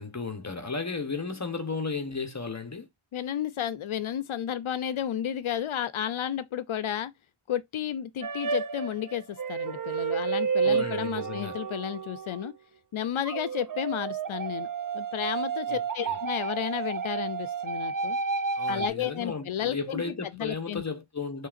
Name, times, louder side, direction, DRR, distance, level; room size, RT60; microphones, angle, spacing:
voice 1, 0.0-2.9 10.6-11.6 15.7-16.2 18.6-21.5, left 4 dB, 35° left, 1.1 m, -34 dB
voice 2, 3.1-7.1 7.5-12.5 12.9-14.7 14.9-18.2 18.7-20.8, left 10 dB, 70° left, 0.6 m, -32 dB
sound 1, 8.2-12.5 13.3-18.9, right 5 dB, 40° right, 0.6 m, -31 dB
6.6 x 3.2 x 2.5 m
wide cardioid pair, 85°, 50 cm